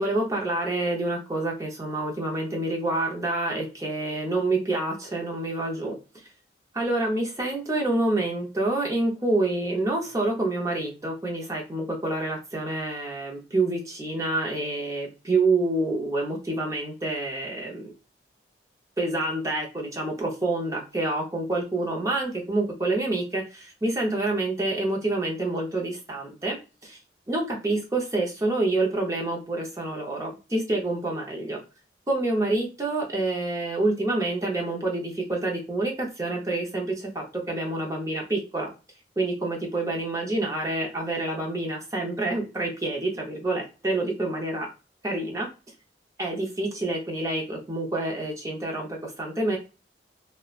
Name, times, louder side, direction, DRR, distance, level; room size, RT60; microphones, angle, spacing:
voice 1, 0.0-6.0 6.7-17.9 19.0-26.6 26.8-27.0 27.3-31.6 32.1-38.7 39.2-44.7 45.0-45.5 46.2-49.6, right 2 dB, 20° right, -1 dB, 0.6 m, -27 dB
2.7 x 2.1 x 2.3 m, 0.31 s
head